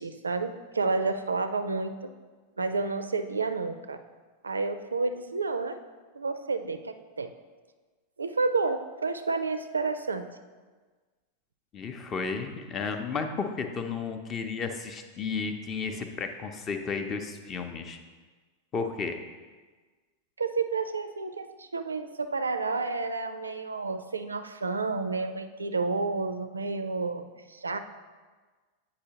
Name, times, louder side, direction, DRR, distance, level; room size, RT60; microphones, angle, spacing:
voice 1, 0.0-2.1 2.6-4.0 4.4-5.8 6.1-7.3 8.2-10.2 20.4-27.2 27.5-27.8, right 4 dB, 75° right, 9 dB, 0.4 m, -30 dB
voice 2, 11.7-18.0 18.7-19.2, left 5 dB, 30° left, 6 dB, 0.6 m, -33 dB
8.5 x 4.9 x 2.9 m, 1.4 s
figure-of-eight pair, 90°, 0 cm